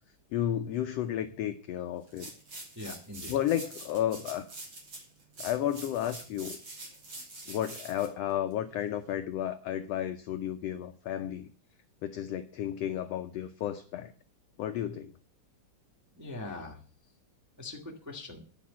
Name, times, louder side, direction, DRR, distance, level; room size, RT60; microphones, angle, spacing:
voice 1, 0.3-2.3 3.3-4.5 5.4-6.6 7.5-11.5 12.0-14.1 14.6-15.1, left 11 dB, 80° left, 8 dB, 1.4 m, -32 dB
sound 1, 2.1-9.1, right 2 dB, 40° right, 3.5 m, -45 dB
voice 2, 2.7-3.4 16.2-16.8 17.6-18.4, left 2 dB, 10° right, 0 dB, 0.9 m, -41 dB
10.0 x 6.1 x 8.4 m, 0.42 s
omnidirectional pair, 3.6 m